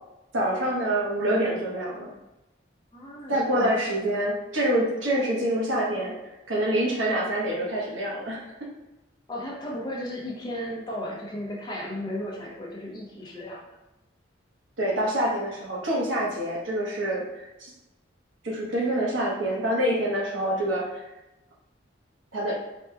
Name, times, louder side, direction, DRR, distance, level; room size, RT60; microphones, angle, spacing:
voice 1, 0.3-2.1 3.3-6.1 6.5-8.5 14.8-17.7 18.4-21.0 22.3-22.6, right 1 dB, 85° right, -4 dB, 1.0 m, -26 dB
voice 2, 2.9-3.7 9.3-13.6, left 1 dB, 20° left, -2 dB, 0.6 m, -35 dB
4.2 x 2.9 x 2.2 m, 0.97 s
head